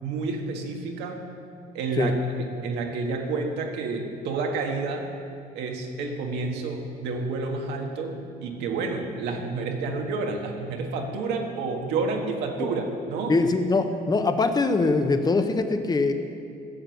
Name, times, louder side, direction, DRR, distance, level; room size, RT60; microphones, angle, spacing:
voice 1, 0.0-1.3 1.7-5.1 5.5-13.4, right 3 dB, 90° right, 2 dB, 1.7 m, -29 dB
voice 2, 13.3-16.1, left 3 dB, 25° left, 7 dB, 1.0 m, -23 dB
14.5 x 7.7 x 7.1 m, 2.4 s
cardioid pair, 110°, 17 cm